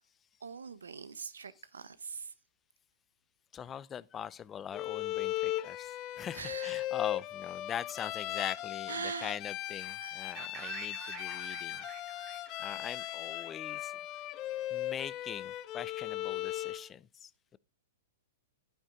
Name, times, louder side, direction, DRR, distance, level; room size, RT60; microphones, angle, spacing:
voice 1, 0.4-2.3 6.3-6.9 8.9-9.4 10.0-10.4 11.2-11.5, right 5 dB, 85° right, 0.9 m, -43 dB
voice 2, 3.5-11.8 12.6-13.9 14.7-17.6, left 8 dB, 25° left, 0.6 m, -42 dB
Bowed string instrument, 4.7-16.9, left 15 dB, 40° left, 1.2 m, -38 dB
sound 1, 10.4-14.2, right 8 dB, 35° right, 2.2 m, -48 dB
11.5 x 9.2 x 3.7 m
hypercardioid pair, 115°, 0 cm